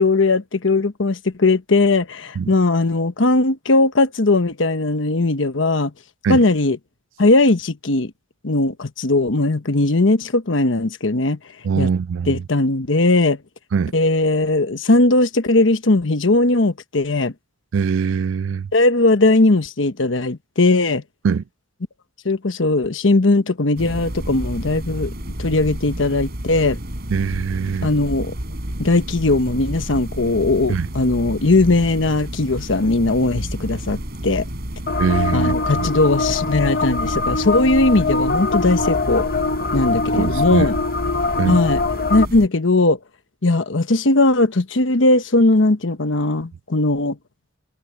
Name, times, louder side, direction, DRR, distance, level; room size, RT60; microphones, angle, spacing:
voice 1, 0.0-5.9 6.3-6.8 7.2-8.1 8.4-11.4 11.8-11.9 12.3-13.4 13.9-17.3 18.7-21.0 22.2-25.1 25.4-26.8 27.8-28.3 28.8-34.5 35.3-39.3 39.7-40.8 41.5-41.8 42.1-43.0 43.4-47.2, left 2 dB, 75° left, 1.2 m, -18 dB
voice 2, 11.6-12.4 13.7-13.9 17.7-18.7 21.2-21.4 27.1-27.9 30.7-30.9 35.0-35.9 40.2-40.7 41.4-41.6, right 6 dB, 80° right, 0.4 m, -22 dB
sound 1, 23.8-42.5, right 1 dB, 55° right, 3.9 m, -30 dB
sound 2, 34.9-42.3, left 3 dB, 50° left, 1.0 m, -23 dB
head